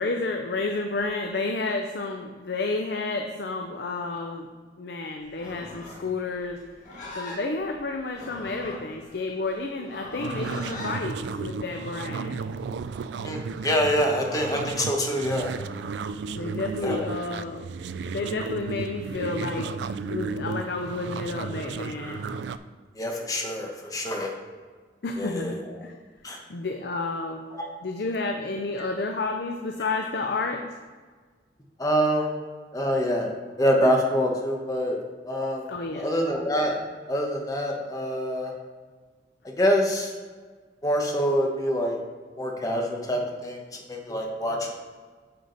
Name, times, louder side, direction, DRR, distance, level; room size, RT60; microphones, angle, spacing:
voice 1, 0.0-4.5 4.8-6.6 7.1-12.4 16.3-17.6 18.0-22.2 25.0-25.9 26.5-27.4 27.8-30.7 35.7-36.1, left 3 dB, 60° left, 3 dB, 0.5 m, -31 dB
Livestock farm animals working animals, 5.3-11.0, left 2 dB, 45° left, 1.8 m, -41 dB
sound 1, 10.2-22.6, right 4 dB, 65° right, 0.3 m, -34 dB
voice 2, 13.2-15.5 16.8-17.0 22.9-24.3 25.2-25.6 26.2-26.4 27.5-27.7 31.8-32.3 32.7-33.3 33.6-35.0 35.3-35.7 35.9-36.8 37.1-38.5 39.6-40.1 40.8-42.0 42.4-43.6 43.9-44.8, equal, 20° left, 1 dB, 1.1 m, -25 dB
8.9 x 4.9 x 4.0 m, 1.5 s
head